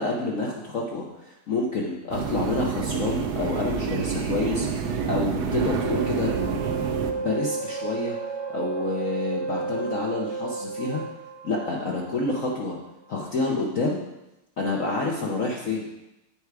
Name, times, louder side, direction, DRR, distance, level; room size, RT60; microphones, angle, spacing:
voice 1, 0.0-6.3 7.1-8.2 8.5-11.0 11.4-12.8 13.1-14.0 14.6-15.9, left 2 dB, 55° left, -2 dB, 0.9 m, -28 dB
sound 1, 2.1-7.1, right 6 dB, 65° right, 1.1 m, -28 dB
sound 2, 5.6-12.9, right 4 dB, 45° right, 0.7 m, -33 dB
9.2 x 4.6 x 4.7 m, 0.94 s
omnidirectional pair, 2.3 m